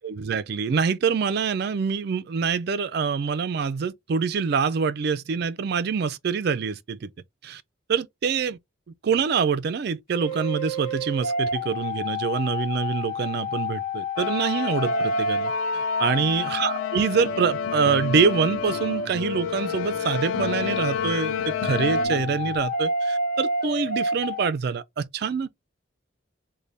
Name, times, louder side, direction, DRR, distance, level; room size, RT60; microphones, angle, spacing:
voice 1, 0.0-7.1 7.4-7.6 7.9-8.6 9.0-25.5, right 6 dB, 50° right, 0.3 m, -25 dB
sound 1, 10.1-24.5, left 2 dB, 45° left, 0.6 m, -29 dB
sound 2, 14.2-22.1, left 9 dB, 75° left, 0.3 m, -32 dB
sound 3, 17.1-22.6, left 3 dB, 25° left, 1.2 m, -37 dB
3.3 x 2.1 x 3.8 m
head